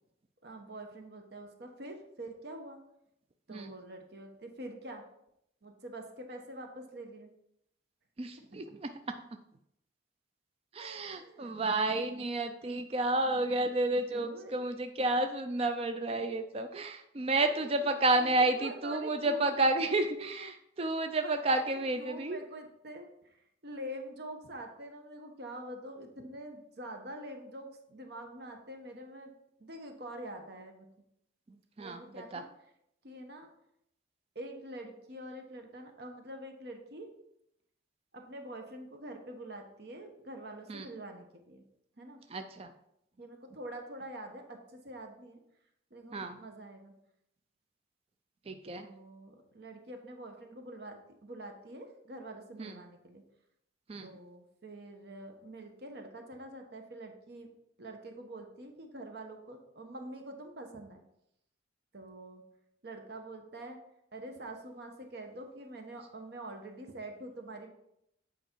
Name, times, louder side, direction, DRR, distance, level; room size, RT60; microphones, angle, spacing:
voice 1, 0.4-2.8 3.5-5.0 5.6-7.3 10.8-11.6 12.6-12.8 13.8-13.9 14.2-14.7 17.4-19.6 21.2-29.3 29.6-30.9 31.8-32.5 33.0-33.5 34.3-37.1 38.1-41.6 42.0-42.2 43.2-45.4 45.9-46.9 48.8-53.2 54.0-57.5 57.8-61.0 61.9-62.4 62.8-63.8 64.1-67.7, right 1 dB, 60° right, 4 dB, 1.0 m, -45 dB
voice 2, 8.2-8.9 10.7-22.4 31.8-32.0 32.3-32.4 40.7-40.9 42.3-42.7 46.1-46.4 48.5-48.9 52.6-52.7 53.9-54.1, right 2 dB, 30° right, 7 dB, 0.4 m, -31 dB
8.0 x 5.0 x 4.5 m, 0.77 s
head